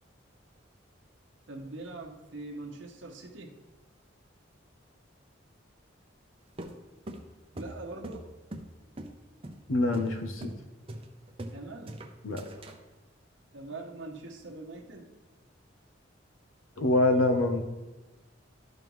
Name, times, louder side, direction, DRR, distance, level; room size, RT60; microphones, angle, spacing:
voice 1, 1.5-3.6 7.5-8.3 11.5-12.1 13.5-15.1, right 2 dB, 70° right, 1 dB, 1.0 m, -42 dB
sound 1, 6.6-8.7 9.0-9.1 9.4-9.6 9.9-10.1 10.4-10.6 10.9-11.6 11.9-12.8, right 1 dB, 30° right, 0.6 m, -41 dB
voice 2, 9.7-10.5 12.2-12.5 16.8-17.6, left 2 dB, 90° left, 6 dB, 0.8 m, -25 dB
12.5 x 5.4 x 3.1 m, 1.1 s
head